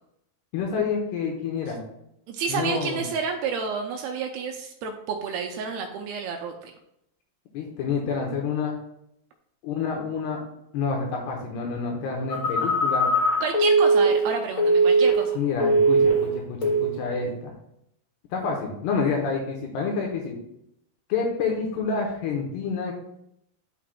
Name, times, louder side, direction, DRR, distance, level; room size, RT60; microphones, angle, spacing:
voice 1, 0.5-1.8 2.5-3.0 7.5-8.8 9.6-10.4 10.7-13.1 15.4-17.5 18.3-20.4 21.1-22.9, left 5 dB, 75° left, 0 dB, 2.8 m, -28 dB
voice 2, 2.3-6.7 13.4-15.4, right 5 dB, 80° right, 3 dB, 2.3 m, -30 dB
Telephone, 12.3-15.3 15.6-16.3 16.6-16.9, right 2 dB, 50° left, 0.9 m, -20 dB
11.0 x 5.8 x 2.2 m, 0.77 s
omnidirectional pair, 4.9 m